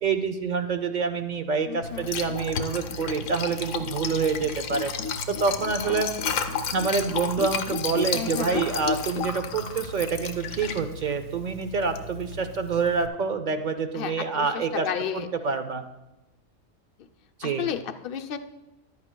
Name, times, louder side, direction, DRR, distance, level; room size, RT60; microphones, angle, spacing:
voice 1, 0.0-4.9 5.3-6.1 6.7-14.9 15.1-15.8 17.4-17.7, right 5 dB, 50° right, 9 dB, 0.5 m, -27 dB
voice 2, 1.7-2.1 5.8-6.0 8.1-8.6 13.9-15.3 17.4-18.4, left 9 dB, 55° left, 6 dB, 0.7 m, -32 dB
Liquid, 1.8-13.1, left 5 dB, 90° left, 1.1 m, -32 dB
14.0 x 11.0 x 2.2 m, 0.97 s
omnidirectional pair, 1.3 m